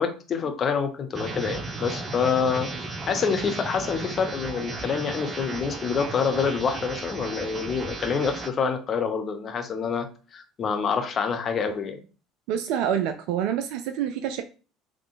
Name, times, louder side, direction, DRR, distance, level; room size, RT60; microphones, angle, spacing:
voice 1, 0.0-2.7 3.1-12.0, left 6 dB, 40° left, 6 dB, 0.8 m, -27 dB
sound 1, 1.1-8.5, right 3 dB, 35° right, 0.7 m, -35 dB
voice 2, 12.5-14.4, right 9 dB, 60° right, 8 dB, 0.3 m, -27 dB
4.2 x 3.1 x 2.4 m, 0.35 s
figure-of-eight pair, 60°, 0 cm